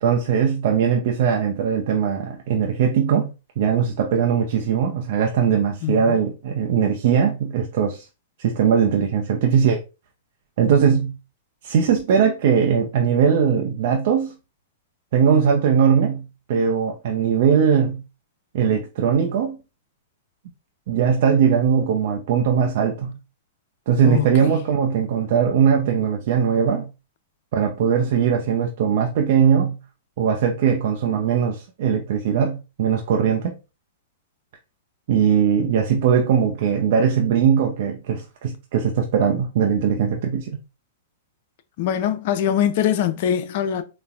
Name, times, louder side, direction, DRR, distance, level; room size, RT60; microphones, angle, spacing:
voice 1, 0.0-3.3 3.6-8.0 8.4-9.8 10.6-11.2 11.6-14.3 15.1-18.0 18.5-19.6 20.9-23.2 23.9-26.9 27.5-29.8 30.2-33.5 35.1-40.5, right 7 dB, 60° right, 0.5 m, -20 dB
voice 2, 5.8-6.2 24.0-24.3 41.8-43.8, left 10 dB, 55° left, 0.5 m, -22 dB
4.0 x 2.1 x 2.4 m
hypercardioid pair, 125°, 0 cm